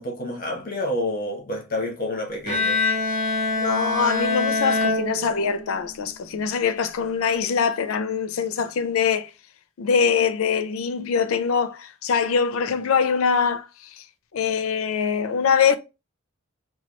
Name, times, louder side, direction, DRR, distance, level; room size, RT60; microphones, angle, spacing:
voice 1, 0.0-2.8, left 1 dB, 45° left, 0.8 m, -29 dB
Bowed string instrument, 2.5-5.8, left 3 dB, 30° right, 0.9 m, -24 dB
voice 2, 3.5-9.3 9.8-13.7 14.0-14.1 14.3-15.8, left 6 dB, 85° left, 0.4 m, -23 dB
2.9 x 2.3 x 3.0 m
head